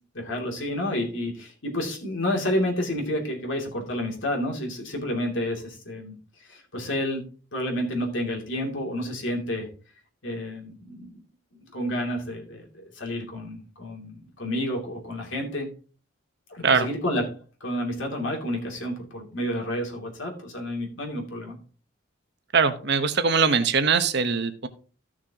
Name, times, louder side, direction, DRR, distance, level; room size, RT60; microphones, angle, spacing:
voice 1, 0.1-6.2 6.5-7.3 7.5-9.7 10.2-11.2 11.7-15.7 16.5-21.6, left 1 dB, 65° left, 1 dB, 2.7 m, -30 dB
voice 2, 22.5-24.7, right 5 dB, 55° right, 9 dB, 1.0 m, -22 dB
14.5 x 6.3 x 2.9 m, 0.38 s
head